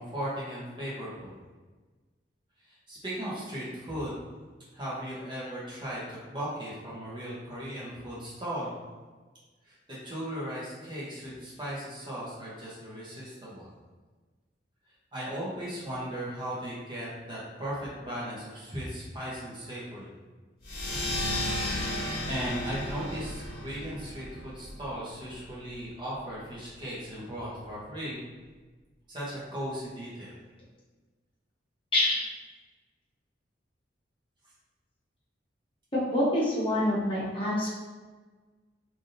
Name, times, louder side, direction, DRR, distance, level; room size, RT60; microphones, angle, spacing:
voice 1, 0.0-1.4 2.7-4.2 4.7-8.8 9.6-13.7 15.1-20.1 22.3-28.2 29.1-30.3, equal, 25° right, -7 dB, 0.9 m, -37 dB
sound 1, 20.6-25.7, left 1 dB, 55° left, 1.1 m, -34 dB
voice 2, 36.1-37.7, left 1 dB, 30° left, -7 dB, 1.0 m, -26 dB
3.4 x 2.6 x 2.6 m, 1.3 s
head